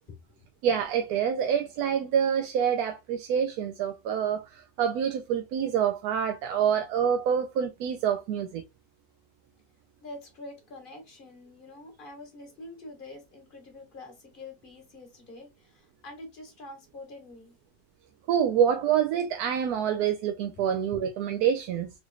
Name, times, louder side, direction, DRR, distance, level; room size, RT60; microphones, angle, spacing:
voice 1, 0.1-0.4 10.0-17.5 20.6-20.7, left 2 dB, 35° left, 1.4 m, -46 dB
voice 2, 0.6-8.6 18.3-21.9, right 8 dB, 80° right, 1.1 m, -26 dB
3.9 x 3.2 x 2.2 m
omnidirectional pair, 1.6 m